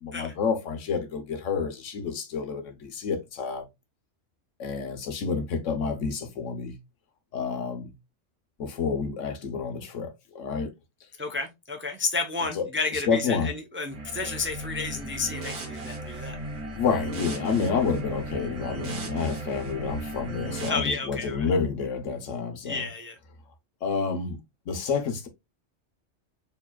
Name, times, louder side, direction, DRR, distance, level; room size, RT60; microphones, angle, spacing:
voice 1, 0.0-3.6 4.6-6.7 7.3-7.9 8.6-10.7 12.6-12.7 13.1-13.5 16.7-22.8 23.8-24.4 24.7-25.3, left 5 dB, 85° left, 1.2 m, -29 dB
voice 2, 11.2-16.4 20.7-21.5 22.6-23.2, left 4 dB, 15° right, 0.4 m, -31 dB
sound 1, 13.9-20.7, right 2 dB, 60° right, 1.3 m, -36 dB
4.5 x 3.3 x 2.2 m
omnidirectional pair, 1.2 m